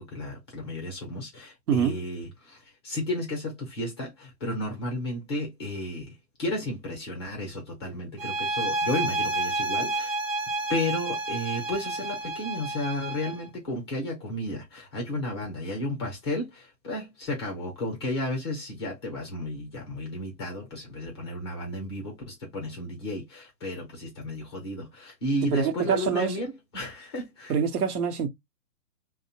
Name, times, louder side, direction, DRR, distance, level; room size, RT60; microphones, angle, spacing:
voice 1, 0.0-10.2 10.7-27.5, left 1 dB, 15° left, 0.5 m, -33 dB
voice 2, 1.7-2.0 25.4-26.4 27.5-28.3, right 7 dB, 70° right, 0.8 m, -25 dB
sound 1, 8.2-13.5, right 2 dB, 40° right, 0.6 m, -30 dB
2.6 x 2.1 x 2.8 m
hypercardioid pair, 140°, 47 cm